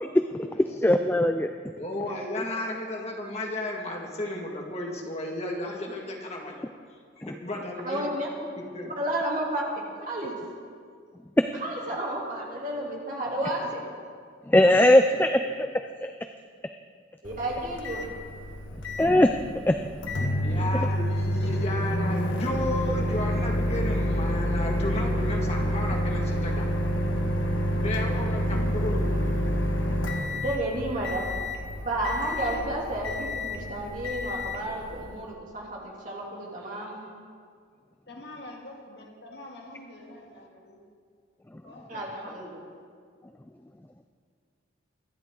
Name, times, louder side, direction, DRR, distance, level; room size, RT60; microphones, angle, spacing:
voice 1, 0.8-1.5 14.5-15.3 15.6-15.7 16.0-16.1 19.0-19.8, left 1 dB, 10° left, 7 dB, 0.3 m, -19 dB
voice 2, 1.7-6.7 7.2-8.1 8.7-8.9 13.4-13.7 15.1-15.5 20.4-26.7 27.7-29.1, left 1 dB, 35° left, 0 dB, 1.9 m, -33 dB
voice 3, 7.8-8.3 9.0-10.3 11.5-13.8 17.2-18.1 30.3-31.3 31.8-37.0 41.9-42.6, right 1 dB, 40° right, -3 dB, 3.1 m, -31 dB
Microwave oven, 17.2-35.2, left 1 dB, 85° left, 1.3 m, -28 dB
voice 4, 32.4-32.7 38.1-40.8 41.6-42.3, left 1 dB, 60° left, 0 dB, 2.2 m, -45 dB
24.5 x 11.0 x 3.8 m, 2.1 s
head